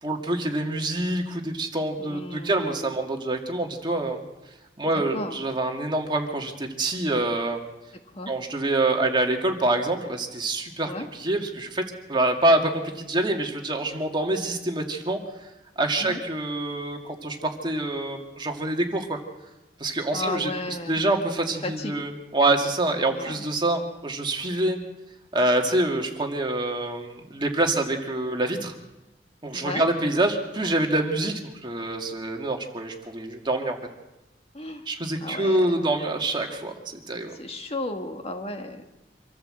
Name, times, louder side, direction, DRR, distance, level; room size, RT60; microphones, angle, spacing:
voice 1, 0.0-4.2 4.8-7.6 8.3-10.9 11.2-11.8 12.1-15.5 15.8-19.2 19.8-20.5 20.9-24.8 25.3-28.7 29.4-33.8 34.9-36.7 37.1-37.4, right 2 dB, 25° right, 2 dB, 2.3 m, -26 dB
voice 2, 2.0-2.9 4.9-5.4 8.1-8.3 10.9-11.1 16.0-16.2 20.1-21.0 21.6-22.1 23.1-23.4 29.5-29.9 34.5-34.9 35.2-35.7 37.3-38.8, left 2 dB, 35° left, 4 dB, 1.8 m, -34 dB
26.0 x 14.0 x 7.9 m, 1.0 s
head